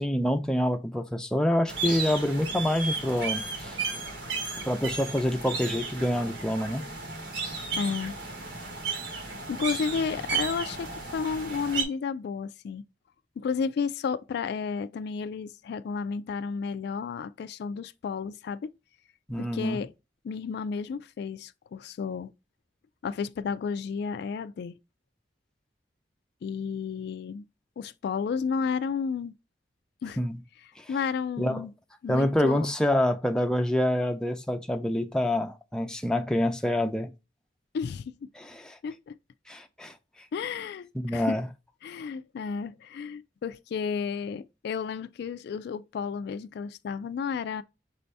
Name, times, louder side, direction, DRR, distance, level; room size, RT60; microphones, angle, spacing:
voice 1, 0.0-3.8 4.7-6.9 19.3-19.8 30.2-30.4 31.4-31.6 32.1-37.1 38.4-38.8 39.5-39.9 40.9-41.5, left 1 dB, 5° left, 0.5 m, -27 dB
sound 1, 1.7-11.8, right 4 dB, 80° right, 1.3 m, -34 dB
voice 2, 7.7-8.2 9.5-12.8 13.4-18.7 19.4-19.9 20.2-22.3 23.0-24.8 26.4-27.4 27.8-29.4 30.0-30.2 30.9-31.7 32.0-32.7 37.7-38.3 38.8-39.2 40.3-41.4 41.8-47.6, left 6 dB, 65° left, 0.3 m, -32 dB
6.1 x 2.7 x 3.3 m
head